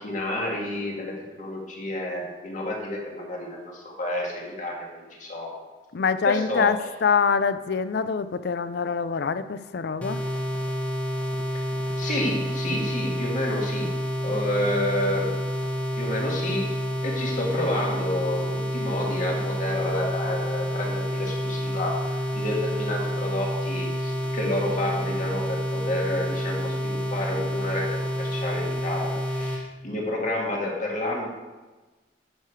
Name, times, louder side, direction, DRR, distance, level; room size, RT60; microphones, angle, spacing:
voice 1, 0.0-5.5 6.3-6.7 12.0-13.9 14.2-15.4 16.0-16.7 17.0-31.3, left 1 dB, 45° left, -1 dB, 1.9 m, -30 dB
voice 2, 5.9-10.2, left 6 dB, 65° left, 13 dB, 0.5 m, -25 dB
sound 1, 10.0-29.6, equal, 10° left, 1.0 m, -29 dB
10.5 x 6.7 x 4.7 m, 1.2 s
head